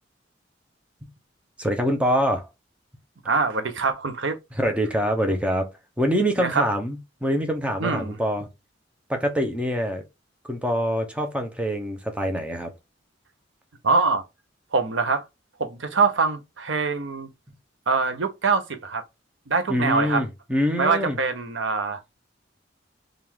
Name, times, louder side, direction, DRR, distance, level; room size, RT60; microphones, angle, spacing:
voice 1, 1.6-2.5 4.6-5.7 6.0-8.5 9.1-10.0 10.5-12.7 19.7-21.2, equal, 5° right, 0.8 m, -25 dB
voice 2, 3.3-4.4 6.4-6.6 7.8-8.2 13.8-14.2 14.7-15.3 15.6-17.3 17.9-19.0 19.5-20.2 20.8-22.0, right 4 dB, 80° right, 0.8 m, -24 dB
3.6 x 2.5 x 4.5 m
head